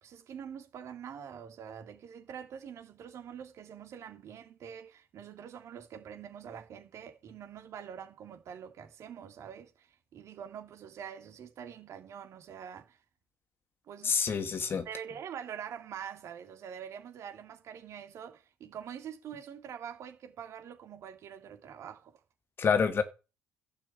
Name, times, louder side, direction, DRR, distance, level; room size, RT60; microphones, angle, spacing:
voice 1, 0.0-13.0 13.8-14.2 14.8-22.2, right 8 dB, 60° right, 3.0 m, -45 dB
voice 2, 14.0-14.9 22.6-23.0, left 6 dB, 40° left, 2.0 m, -27 dB
12.0 x 6.7 x 8.8 m
cardioid pair, 95°, 6 cm